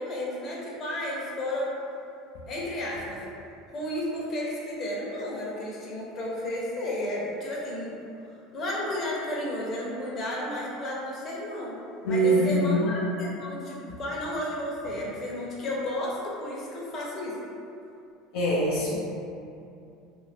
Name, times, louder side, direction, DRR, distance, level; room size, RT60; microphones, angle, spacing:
voice 1, 0.0-1.7 2.5-3.2 3.7-8.0 8.5-11.8 12.1-17.4, left 1 dB, 40° left, -5 dB, 0.8 m, -32 dB
voice 2, 12.0-12.9 18.3-19.0, right 1 dB, 75° left, -7 dB, 0.6 m, -23 dB
2.6 x 2.4 x 3.4 m, 2.6 s
hypercardioid pair, 90°, 0 cm